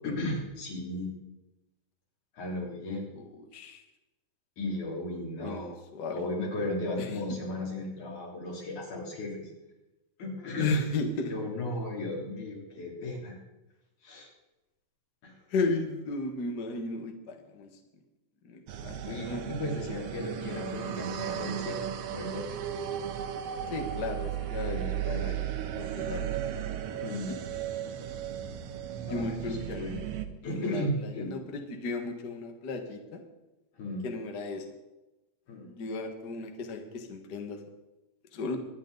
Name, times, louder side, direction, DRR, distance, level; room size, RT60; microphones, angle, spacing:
voice 1, 0.0-1.1 2.3-3.1 4.6-5.8 6.1-9.5 10.2-10.8 11.3-13.4 14.0-14.3 15.2-15.3 19.1-21.8 22.1-22.6 24.5-25.3 27.0-27.3 29.1-30.0 30.4-31.4 33.7-34.1 35.5-35.7, left 1 dB, 90° left, -3 dB, 4.7 m, -35 dB
voice 2, 5.4-6.2 7.0-7.1 10.6-11.3 15.5-17.7 18.4-19.4 23.7-25.5 25.7-26.2 29.0-29.9 30.4-33.2 34.0-34.6 35.6-37.6 38.3-38.6, left 3 dB, 45° left, 4 dB, 1.7 m, -35 dB
sound 1, 18.7-30.3, right 10 dB, 65° right, 1.8 m, -35 dB
23.0 x 10.5 x 4.0 m, 1.0 s
omnidirectional pair, 3.3 m